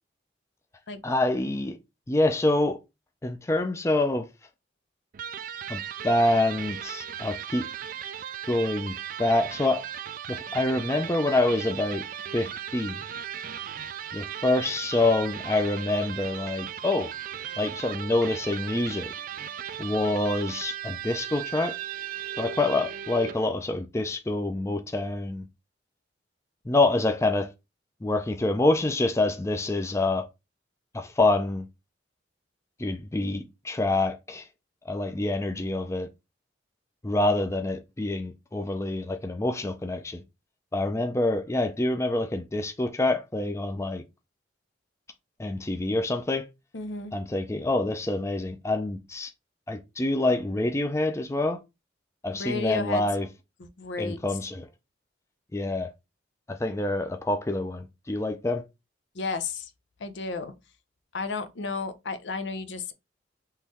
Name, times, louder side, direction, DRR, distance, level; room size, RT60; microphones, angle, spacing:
voice 1, 1.0-1.8 2.1-2.8 3.2-4.3 5.7-7.7 8.5-9.8 10.3-12.0 12.3-13.0 14.1-17.1 17.6-19.1 19.8-21.8 22.4-25.5 26.7-27.5 28.0-30.3 30.9-31.6 32.8-34.5 34.9-36.1 37.0-40.2 40.7-44.0 45.4-46.5 47.1-49.3 49.7-51.6 52.2-53.3 54.0-54.7 55.5-55.9 56.5-58.6, left 2 dB, 15° left, 0.4 m, -26 dB
Electric guitar, 5.1-23.5, right 9 dB, 45° right, 0.3 m, -37 dB
voice 2, 46.7-47.1 52.4-53.0 53.6-54.2 59.1-59.7 60.0-60.5 61.1-62.9, left 4 dB, 75° left, 0.6 m, -32 dB
3.8 x 3.0 x 4.2 m
head